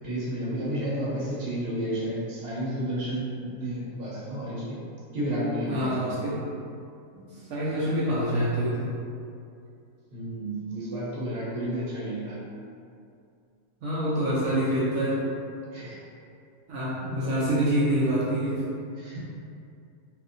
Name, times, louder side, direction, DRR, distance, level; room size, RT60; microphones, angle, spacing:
voice 1, 0.0-4.8 5.1-6.1 10.1-12.4 15.7-16.1 19.0-19.2, right 1 dB, 50° right, -9 dB, 1.0 m, -31 dB
voice 2, 5.7-6.5 7.1-8.9 13.8-15.2 16.7-18.6, equal, 70° right, -9 dB, 1.0 m, -26 dB
2.9 x 2.8 x 2.5 m, 2.5 s
omnidirectional pair, 1.5 m